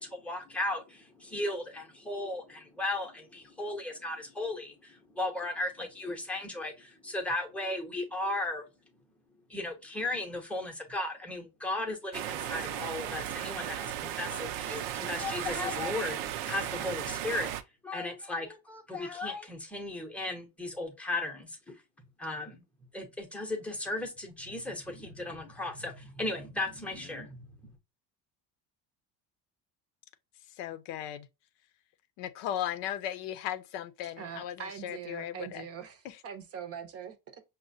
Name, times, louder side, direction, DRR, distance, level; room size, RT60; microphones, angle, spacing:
voice 1, 0.0-8.7 9.5-16.2 16.5-17.5 17.8-21.6 22.2-22.6 22.9-27.5, left 2 dB, 5° left, 0.7 m, -36 dB
sound 1, 12.1-17.6, right 11 dB, 80° right, 0.6 m, -36 dB
voice 2, 30.6-31.3 32.2-34.6 34.8-35.6, left 11 dB, 80° left, 0.6 m, -36 dB
voice 3, 34.0-37.4, right 8 dB, 35° right, 0.6 m, -43 dB
5.4 x 2.1 x 2.5 m
cardioid pair, 140°, 41 cm